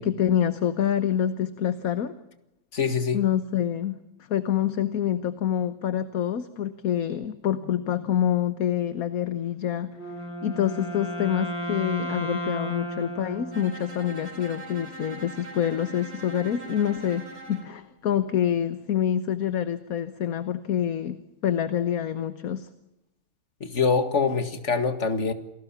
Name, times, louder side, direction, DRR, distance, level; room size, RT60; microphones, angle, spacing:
voice 1, 0.0-2.1 3.1-4.0 4.3-9.9 10.4-17.2 17.5-22.7, left 10 dB, 55° left, 12 dB, 1.4 m, -26 dB
voice 2, 2.7-3.2 23.6-25.3, left 5 dB, 40° left, 9 dB, 2.1 m, -24 dB
Wind instrument woodwind instrument, 9.9-14.2, equal, 75° left, 5.6 m, -33 dB
Bowed string instrument, 13.5-17.7, right 2 dB, 80° right, 5.0 m, -42 dB
28.0 x 18.5 x 7.2 m, 0.90 s
omnidirectional pair, 1.9 m